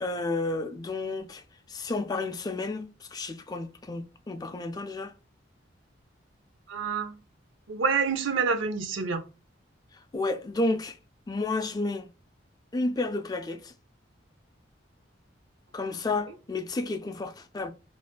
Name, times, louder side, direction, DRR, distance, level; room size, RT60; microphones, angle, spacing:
voice 1, 0.0-5.1 9.9-11.0 11.3-12.1 12.7-13.7 15.7-17.7, left 2 dB, 20° left, 0.3 m, -31 dB
voice 2, 6.7-7.2 7.7-9.2, right 5 dB, 80° right, 0.6 m, -27 dB
3.6 x 2.5 x 2.3 m
head